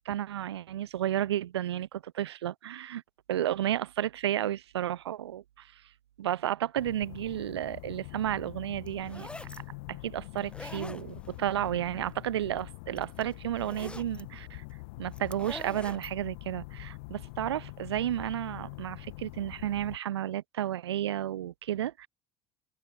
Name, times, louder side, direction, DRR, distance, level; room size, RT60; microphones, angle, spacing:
voice 1, 0.1-3.0 3.3-5.7 6.2-9.3 9.9-14.6 15.0-22.1, right 11 dB, 75° right, 0.7 m, -32 dB
sound 1, 6.8-20.0, left 26 dB, 65° left, 1.9 m, -45 dB
sound 2, 8.9-9.6 10.4-11.4 12.6-12.7 13.0-14.2 15.1-16.1, left 1 dB, 10° left, 1.3 m, -44 dB
figure-of-eight pair, 60°, 14 cm